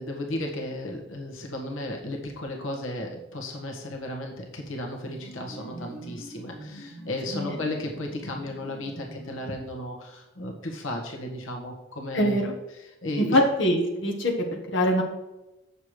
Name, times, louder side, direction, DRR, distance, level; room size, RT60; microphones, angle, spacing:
voice 1, 0.0-12.4 12.7-13.4, left 1 dB, 80° left, 1 dB, 1.6 m, -34 dB
sound 1, 4.9-9.8, right 1 dB, 5° right, 3.2 m, -44 dB
voice 2, 12.1-12.5 13.3-14.3 14.7-15.0, equal, 60° left, 0 dB, 1.6 m, -23 dB
8.4 x 7.0 x 4.8 m, 0.99 s
head